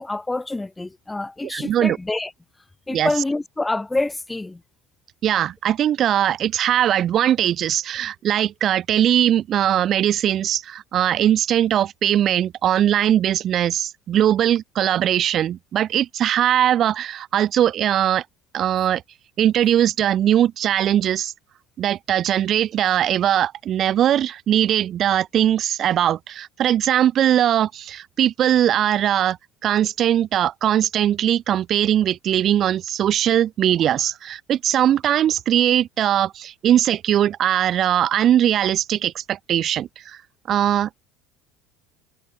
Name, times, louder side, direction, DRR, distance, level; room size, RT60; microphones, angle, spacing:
voice 1, 0.0-2.3 2.9-4.6, left 2 dB, 10° left, 1.2 m, -26 dB
voice 2, 1.4-2.0 2.9-3.1 5.2-18.2 18.5-19.0 19.4-21.3 21.8-29.4 29.6-40.2 40.5-41.0, right 11 dB, 35° right, 1.3 m, -20 dB
cardioid pair, 145°, 0 cm